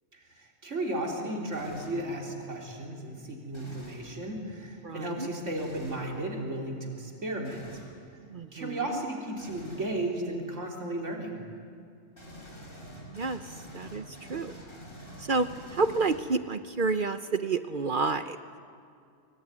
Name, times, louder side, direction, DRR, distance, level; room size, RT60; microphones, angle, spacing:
voice 1, 0.1-7.7 8.5-11.4, right 1 dB, 80° right, 0 dB, 3.9 m, -34 dB
sound 1, 1.5-2.1 3.5-4.1 5.6-6.0 7.4-7.9 9.4-9.9 12.1-16.5, equal, 45° left, 5.6 m, -46 dB
voice 2, 4.8-5.3 8.3-8.8 13.1-13.4 13.7-14.5 15.3-18.4, right 4 dB, 50° right, 11 dB, 0.9 m, -29 dB
24.5 x 23.0 x 9.8 m, 2.3 s
omnidirectional pair, 1.2 m